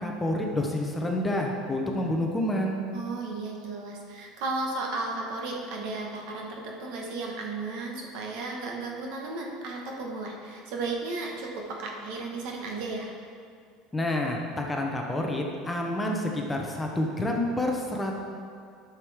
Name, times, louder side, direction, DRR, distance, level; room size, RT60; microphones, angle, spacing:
voice 1, 0.0-2.8 13.9-18.1, left 1 dB, 10° left, 0 dB, 0.8 m, -28 dB
voice 2, 2.9-13.1, right 3 dB, 65° right, 0 dB, 1.4 m, -34 dB
10.5 x 6.4 x 3.6 m, 2.2 s
cardioid pair, 145°, 0 cm